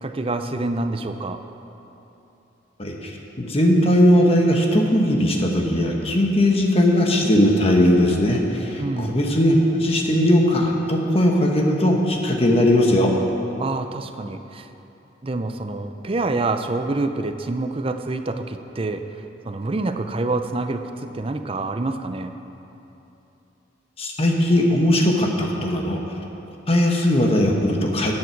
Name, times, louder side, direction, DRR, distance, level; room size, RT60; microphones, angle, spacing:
voice 1, 0.0-1.4 8.8-9.2 13.6-14.7 15.2-22.4, right 2 dB, 30° right, 8 dB, 0.5 m, -27 dB
voice 2, 2.8-3.1 3.4-13.1 24.0-26.0 26.7-28.1, left 1 dB, 30° left, 1 dB, 1.2 m, -19 dB
15.5 x 8.7 x 4.6 m, 3.0 s
head